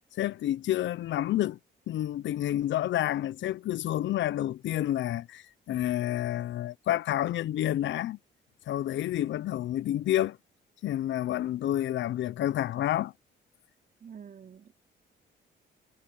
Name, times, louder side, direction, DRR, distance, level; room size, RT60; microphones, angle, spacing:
voice 1, 0.2-1.6 1.9-8.2 8.7-10.4 10.8-13.1, left 13 dB, 70° left, 0.7 m, -29 dB
voice 2, 14.0-14.7, right 7 dB, 45° right, 3.6 m, -47 dB
cardioid pair, 90°, 20 cm